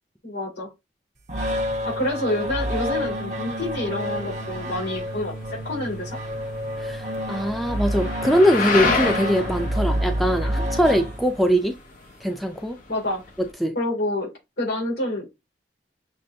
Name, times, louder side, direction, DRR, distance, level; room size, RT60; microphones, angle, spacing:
voice 1, 0.2-0.7 1.8-6.2 10.4-10.5 12.9-13.2 13.7-14.3 14.6-15.3, left 1 dB, 70° left, 2.9 m, -28 dB
sound 1, 1.3-11.5, equal, 45° right, 0.9 m, -28 dB
sound 2, 3.6-13.5, left 4 dB, 50° left, 0.9 m, -31 dB
voice 2, 6.8-11.7 12.2-12.8 13.6-13.8, equal, ahead, 0.4 m, -22 dB
6.4 x 2.2 x 2.6 m
head